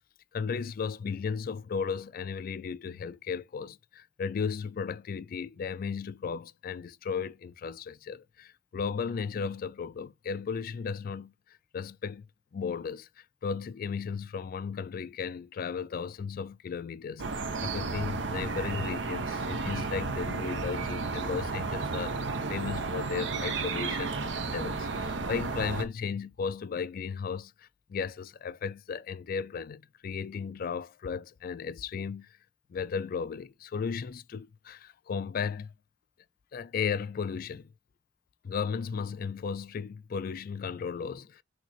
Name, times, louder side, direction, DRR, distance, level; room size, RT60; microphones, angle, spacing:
voice 1, 0.3-11.3 11.7-12.3 12.5-32.4 32.7-35.7 36.5-37.7 38.4-41.4, left 6 dB, 50° left, 0.3 m, -35 dB
sound 1, 17.2-25.9, right 4 dB, 85° right, 0.8 m, -33 dB
6.3 x 2.9 x 2.9 m
head